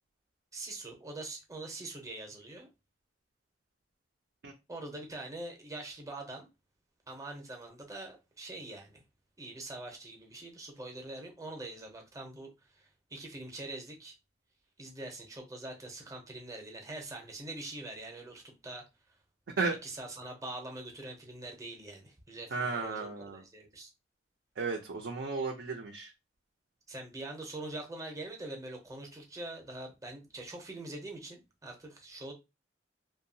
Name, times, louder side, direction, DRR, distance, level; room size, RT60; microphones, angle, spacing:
voice 1, 0.5-2.7 4.7-6.5 7.1-9.0 9.4-14.2 14.8-18.8 19.6-23.9 26.9-32.3, right 2 dB, 20° right, 0.6 m, -44 dB
voice 2, 22.5-23.4 24.6-26.1, right 4 dB, 75° right, 0.5 m, -34 dB
2.7 x 2.2 x 2.6 m
head